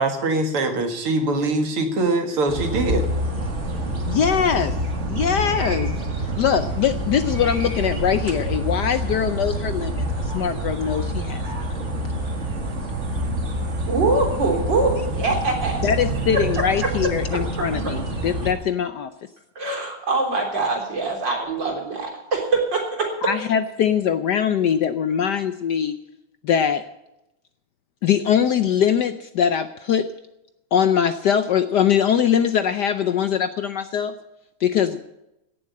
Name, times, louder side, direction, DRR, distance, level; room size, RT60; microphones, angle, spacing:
voice 1, 0.0-3.0, right 2 dB, 85° right, 5 dB, 2.8 m, -22 dB
sound 1, 2.5-18.5, right 1 dB, 35° right, 2.2 m, -27 dB
voice 2, 4.1-4.8 5.1-5.9 6.4-11.4 15.8-19.1 23.2-25.9 26.4-26.8 28.0-30.1 30.7-34.1 34.6-35.0, left 8 dB, 65° left, 10 dB, 1.1 m, -22 dB
voice 3, 13.9-15.8 16.3-16.4 16.8-16.9 17.3-17.6 19.6-23.1, right 3 dB, 55° right, 1 dB, 4.2 m, -23 dB
16.5 x 7.5 x 8.6 m, 0.88 s
omnidirectional pair, 2.4 m